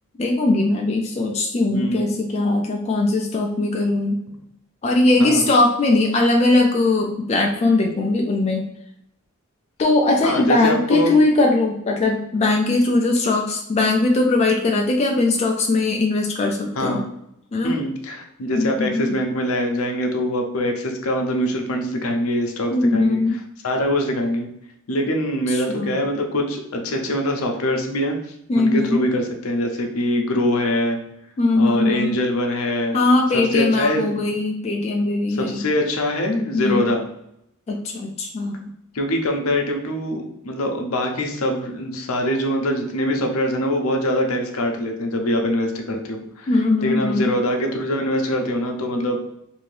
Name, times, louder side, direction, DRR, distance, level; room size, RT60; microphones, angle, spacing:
voice 1, 0.2-4.2 4.8-8.7 9.8-17.0 17.5-17.8 18.5-19.2 22.7-23.4 25.5-26.0 28.5-29.0 31.4-32.2 32.9-35.6 36.5-36.9 37.7-38.7 46.5-47.3, left 2 dB, 30° left, 1 dB, 0.3 m, -20 dB
voice 2, 1.7-2.1 5.2-5.5 10.2-11.1 16.8-17.1 17.6-23.2 23.6-24.5 24.9-28.2 28.5-31.0 31.5-33.0 33.3-34.1 35.4-37.0 38.9-46.5 46.8-49.2, equal, 75° left, 3 dB, 0.6 m, -23 dB
2.7 x 2.6 x 3.2 m, 0.77 s
head